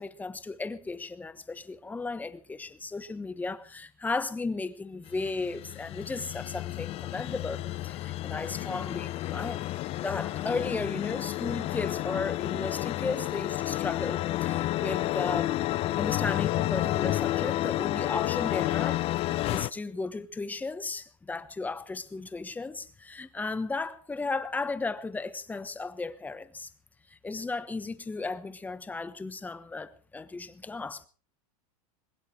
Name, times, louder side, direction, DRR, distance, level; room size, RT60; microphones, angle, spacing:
voice 1, 0.0-9.7 10.0-15.6 16.0-26.7 27.1-31.1, left 3 dB, 10° left, 1.2 m, -35 dB
sound 1, 5.1-19.7, left 15 dB, 35° left, 0.7 m, -30 dB
21.5 x 19.5 x 3.3 m
supercardioid pair, 140°, 18 cm